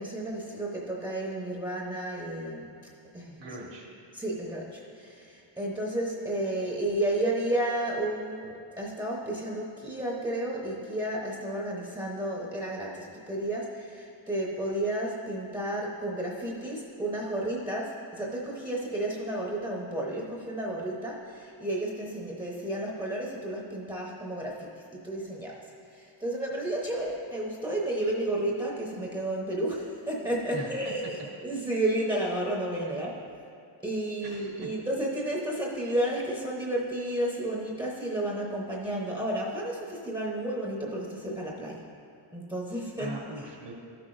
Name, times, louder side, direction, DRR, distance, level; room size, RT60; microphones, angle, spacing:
voice 1, 0.0-2.7 3.1-3.4 4.1-31.2 31.4-33.2 33.8-41.9 42.3-43.5, right 1 dB, 10° right, -4 dB, 0.8 m, -32 dB
voice 2, 3.4-3.9 30.5-31.1 34.2-34.7 43.0-43.7, right 2 dB, 65° right, -1 dB, 1.6 m, -40 dB
13.0 x 6.0 x 2.5 m, 2.5 s
cardioid pair, 135°, 46 cm